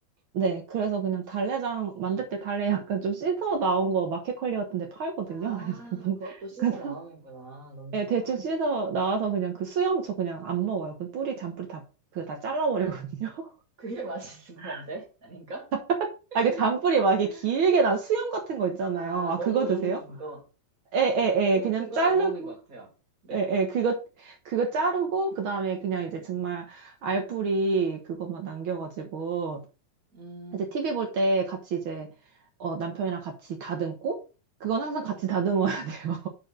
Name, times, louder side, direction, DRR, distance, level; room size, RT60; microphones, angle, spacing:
voice 1, 0.3-6.2 6.6-6.9 7.9-11.8 12.1-13.5 14.6-14.8 15.9-16.1 16.3-20.0 20.9-22.5 23.3-29.6 30.5-32.1 32.6-34.2 34.6-36.3, right 5 dB, 75° right, 1.1 m, -27 dB
voice 2, 5.3-8.3 13.8-15.7 16.3-16.7 17.2-17.5 18.9-20.4 21.5-22.9 23.2-23.4 30.1-30.7 35.0-35.7, right 3 dB, 30° right, 2.0 m, -40 dB
6.7 x 4.9 x 6.3 m
omnidirectional pair, 4.2 m